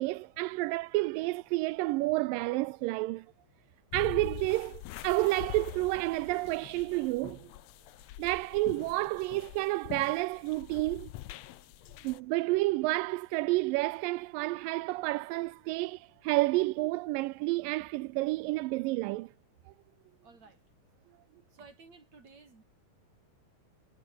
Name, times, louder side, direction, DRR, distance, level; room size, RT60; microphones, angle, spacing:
voice 1, 0.0-3.3 3.9-7.5 8.2-11.1 12.0-19.3, right 21 dB, 85° right, 2.3 m, -30 dB
sound 1, 3.9-12.2, left 15 dB, 80° left, 1.5 m, -45 dB
voice 2, 20.2-20.6 21.5-22.6, right 4 dB, 50° right, 6.9 m, -55 dB
omnidirectional pair, 3.9 m